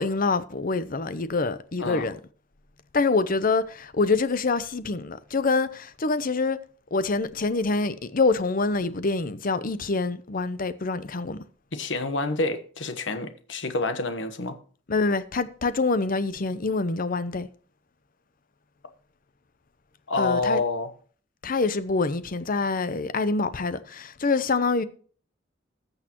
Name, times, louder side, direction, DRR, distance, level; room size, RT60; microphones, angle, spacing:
voice 1, 0.0-2.2 2.9-6.6 6.9-11.4 14.9-17.5 20.2-20.6 21.4-24.8, left 3 dB, 50° left, 0.8 m, -25 dB
voice 2, 11.7-14.6 20.1-20.9, left 2 dB, 70° left, 1.2 m, -28 dB
20.0 x 6.6 x 3.0 m
head